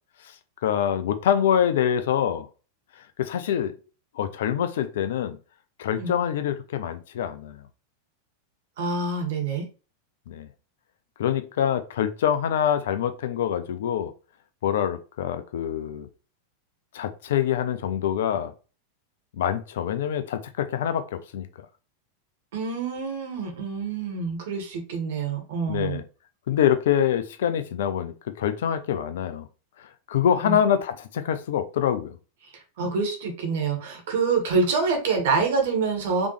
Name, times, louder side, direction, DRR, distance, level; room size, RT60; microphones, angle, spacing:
voice 1, 0.6-2.5 3.2-3.7 4.2-5.4 5.8-7.6 10.3-10.5 11.2-14.1 14.6-16.1 16.9-18.5 19.4-21.5 25.7-26.0 26.5-29.5 30.1-32.2, left 9 dB, 60° left, 0.5 m, -25 dB
voice 2, 8.8-9.6 22.5-26.0 30.4-30.6 32.5-36.3, right 4 dB, 55° right, 1.6 m, -26 dB
5.1 x 3.2 x 3.2 m
figure-of-eight pair, 90°, 0 cm